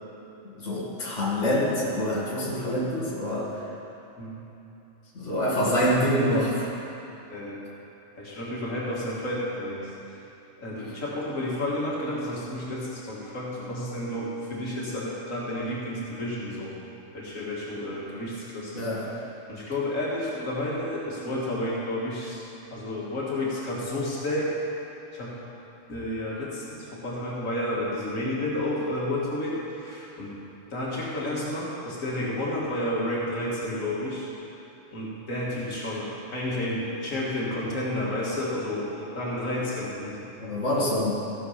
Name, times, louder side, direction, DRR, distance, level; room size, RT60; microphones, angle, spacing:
voice 1, 0.5-3.6 5.1-6.6 18.7-19.2 40.4-41.1, equal, 65° left, -6 dB, 2.2 m, -26 dB
voice 2, 6.1-6.5 7.3-7.6 8.2-9.9 10.6-16.8 17.1-19.1 19.5-22.4 22.7-24.5 25.1-25.4 25.9-30.4 30.7-34.3 34.9-40.2, left 1 dB, 90° left, -6 dB, 2.4 m, -31 dB
15.5 x 7.0 x 5.8 m, 2.9 s
omnidirectional pair, 1.3 m